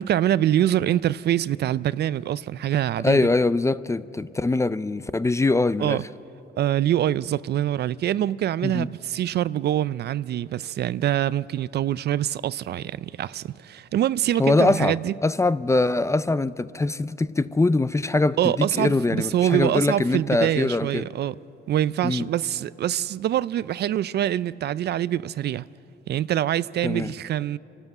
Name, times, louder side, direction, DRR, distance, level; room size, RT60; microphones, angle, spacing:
voice 1, 0.0-3.3 5.8-6.0 6.6-15.1 18.4-21.4 21.7-25.7 26.1-27.6, right 12 dB, 55° right, 0.4 m, -25 dB
voice 2, 3.0-6.0 8.6-8.9 14.4-21.1 22.0-22.3 26.8-27.1, left 2 dB, 15° left, 0.4 m, -23 dB
27.0 x 12.5 x 8.0 m
cardioid pair, 90°, 20 cm